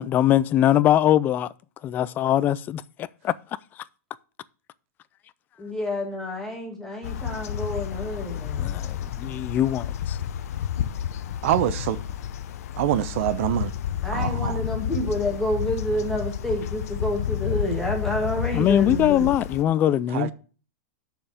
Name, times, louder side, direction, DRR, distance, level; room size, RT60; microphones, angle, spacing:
voice 1, 0.0-1.5 1.8-2.8 3.2-3.3 8.6-10.2 18.5-20.3, left 12 dB, 20° left, 0.3 m, -21 dB
voice 2, 5.6-8.7 14.0-19.3, left 1 dB, 5° left, 1.8 m, -29 dB
sound 1, 7.0-19.6, left 10 dB, 75° left, 0.7 m, -30 dB
voice 3, 11.4-12.0 12.8-13.7 14.1-14.6 20.1-20.3, right 12 dB, 55° right, 0.7 m, -25 dB
6.9 x 5.4 x 7.3 m
supercardioid pair, 155°, 8 cm